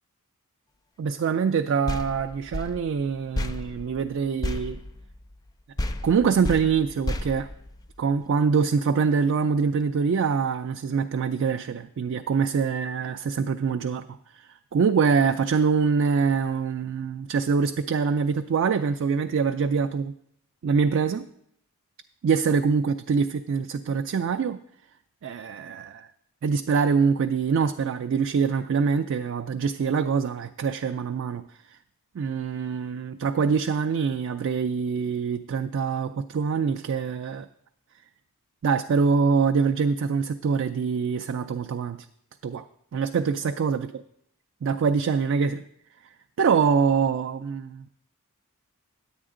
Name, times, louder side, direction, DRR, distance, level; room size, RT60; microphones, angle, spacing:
voice 1, 1.0-4.8 6.0-7.5 8.0-14.1 14.3-20.1 20.6-21.3 22.2-24.6 25.2-26.1 26.4-31.8 32.1-37.5 38.6-42.1 42.4-42.6 42.9-43.9 44.6-45.6 46.4-47.8, right 5 dB, 60° right, 0.3 m, -24 dB
sound 1, 1.9-5.5 5.8-8.2, left 1 dB, 15° left, 0.4 m, -33 dB
9.9 x 8.7 x 3.7 m
head